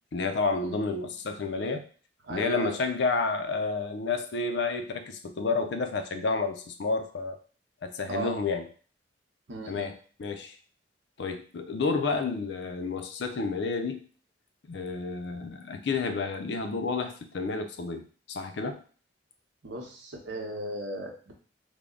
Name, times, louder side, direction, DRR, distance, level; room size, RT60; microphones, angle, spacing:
voice 1, 0.1-1.8 2.3-7.4 7.8-8.6 9.7-10.5 11.2-14.1 14.7-18.8, left 4 dB, 70° left, 6 dB, 0.5 m, -30 dB
voice 2, 2.2-2.7 8.1-8.4 9.5-9.9 19.6-21.3, right 2 dB, 85° right, 1 dB, 0.9 m, -37 dB
3.4 x 2.1 x 3.7 m, 0.41 s
head